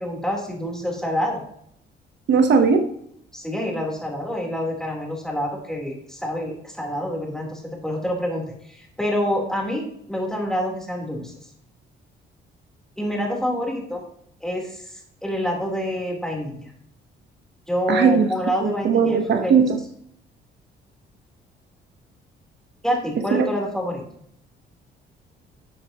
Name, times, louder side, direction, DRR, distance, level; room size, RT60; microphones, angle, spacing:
voice 1, 0.0-1.4 3.3-11.3 13.0-14.0 14.4-16.7 17.7-19.6 22.8-24.0, equal, 5° left, -1 dB, 3.7 m, -27 dB
voice 2, 2.3-2.8 17.9-18.3 18.6-19.8 23.3-23.5, right 6 dB, 65° right, 5 dB, 1.2 m, -18 dB
12.5 x 7.8 x 3.0 m, 0.69 s
cardioid pair, 90°, 20 cm